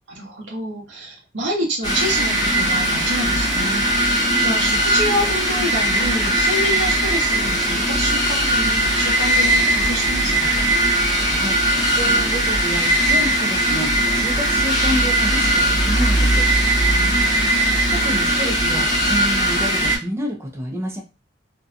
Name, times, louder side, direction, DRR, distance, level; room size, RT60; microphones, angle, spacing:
voice 1, 0.1-4.1 4.4-10.5 16.9-17.5, equal, 85° right, 0 dB, 0.9 m, -27 dB
sound 1, 1.8-20.0, right 1 dB, 20° left, 0.9 m, -19 dB
voice 2, 11.3-11.6 11.9-16.5 17.9-21.0, equal, 15° right, 1 dB, 0.4 m, -29 dB
2.6 x 2.2 x 2.4 m, 0.27 s
head